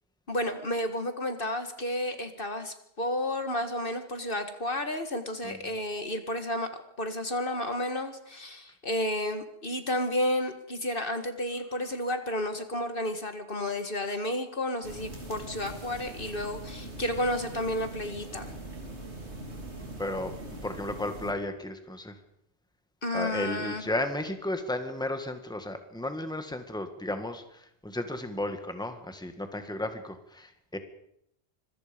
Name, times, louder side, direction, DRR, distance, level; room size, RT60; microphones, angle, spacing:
voice 1, 0.3-6.7 7.0-18.5 23.0-23.9, left 1 dB, 55° left, 7 dB, 2.0 m, -31 dB
sound 1, 14.8-21.3, right 2 dB, 85° right, 3.9 m, -42 dB
voice 2, 20.0-20.3 20.6-22.1 23.1-30.8, left 1 dB, 5° left, 7 dB, 1.9 m, -34 dB
26.0 x 22.5 x 5.3 m, 0.74 s
omnidirectional pair, 1.1 m